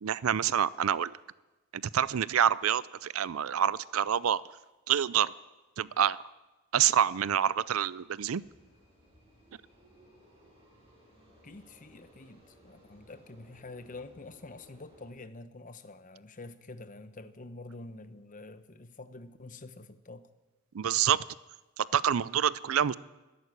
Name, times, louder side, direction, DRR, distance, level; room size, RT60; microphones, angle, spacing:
voice 1, 0.0-1.2 1.7-4.4 4.9-5.3 5.8-6.2 6.7-8.4 20.7-21.2 21.8-23.0, right 9 dB, 85° right, 20 dB, 0.5 m, -27 dB
sound 1, 8.3-15.1, equal, 25° right, 7.3 m, -60 dB
voice 2, 11.4-20.3, left 2 dB, 40° left, 11 dB, 0.9 m, -47 dB
13.5 x 11.0 x 9.8 m, 1.1 s
head